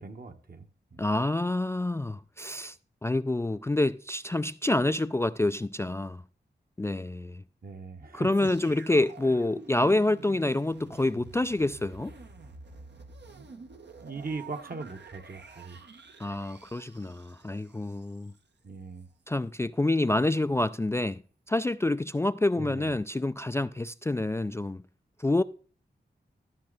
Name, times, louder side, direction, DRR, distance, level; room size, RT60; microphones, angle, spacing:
voice 1, 0.0-1.0 7.6-8.5 9.2-9.4 14.0-15.8 18.6-19.1 22.6-22.9, right 4 dB, 55° right, 1.3 m, -40 dB
voice 2, 1.0-2.8 3.0-6.2 6.8-7.4 8.1-12.1 16.2-18.3 19.3-21.2 21.5-24.8 25.2-25.4, left 2 dB, 15° left, 0.3 m, -27 dB
sound 1, 8.3-18.4 19.0-19.1, right 4 dB, 70° right, 1.1 m, -49 dB
13.5 x 5.9 x 4.0 m
cardioid pair, 55°, 18 cm